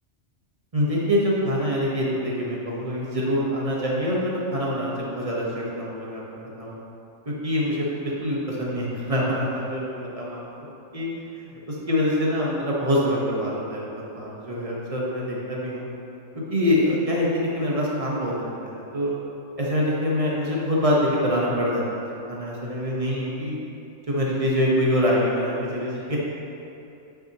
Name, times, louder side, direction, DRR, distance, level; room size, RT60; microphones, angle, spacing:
voice 1, 0.7-6.2 6.6-6.8 7.2-10.4 10.9-15.9 16.5-19.1 19.6-23.6 24.1-26.2, equal, 30° right, -5 dB, 1.2 m, -25 dB
8.6 x 6.3 x 3.0 m, 2.8 s
omnidirectional pair, 1.3 m